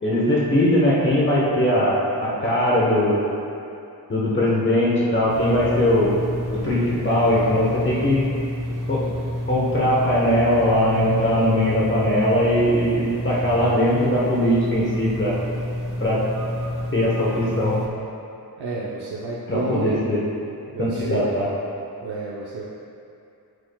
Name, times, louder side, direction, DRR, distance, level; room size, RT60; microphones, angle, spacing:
voice 1, 0.0-3.2 4.1-6.2 6.6-8.2 8.9-9.0 9.5-15.3 16.0-16.2 16.9-17.8 19.5-20.2 20.8-21.5, left 1 dB, 30° left, -6 dB, 1.0 m, -20 dB
sound 1, 5.3-17.9, left 1 dB, 55° right, 0.9 m, -28 dB
voice 2, 18.6-20.0 20.7-21.3 22.0-22.7, right 3 dB, 85° right, -5 dB, 0.8 m, -30 dB
8.5 x 8.3 x 2.2 m, 2.6 s
wide cardioid pair, 180°, 38 cm